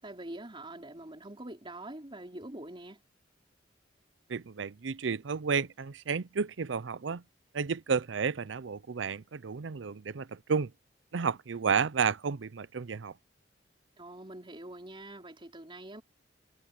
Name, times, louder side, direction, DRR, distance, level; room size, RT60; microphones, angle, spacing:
voice 1, 0.0-3.0 14.0-16.0, right 1 dB, 30° right, 4.0 m, -44 dB
voice 2, 4.3-7.2 7.5-10.7 11.1-13.1, right 5 dB, 90° right, 0.6 m, -31 dB
head